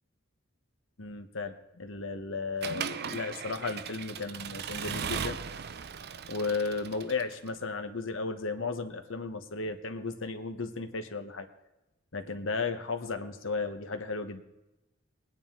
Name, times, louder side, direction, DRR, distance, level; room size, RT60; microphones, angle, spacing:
voice 1, 1.0-5.4 6.3-11.5 12.1-14.4, left 4 dB, 70° left, 8 dB, 1.1 m, -34 dB
Accelerating revving vroom / Mechanisms, 2.6-7.5, right 7 dB, 50° right, 0.6 m, -38 dB
21.0 x 9.9 x 3.7 m, 0.95 s
head